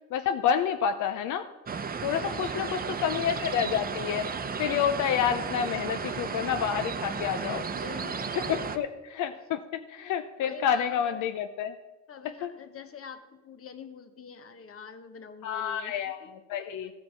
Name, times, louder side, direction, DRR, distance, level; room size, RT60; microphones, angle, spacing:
voice 1, 0.1-1.5 2.0-4.3 4.6-7.7 8.4-11.8 12.4-12.5 15.4-16.9, left 8 dB, 80° left, 9 dB, 0.6 m, -29 dB
sound 1, 1.7-8.8, right 5 dB, 30° right, 0.7 m, -34 dB
voice 2, 2.1-3.1 7.6-8.8 10.4-11.2 12.1-16.2 16.6-16.9, left 6 dB, 50° left, 9 dB, 1.1 m, -46 dB
15.0 x 5.3 x 5.7 m, 1.1 s
cardioid pair, 90°, 30 cm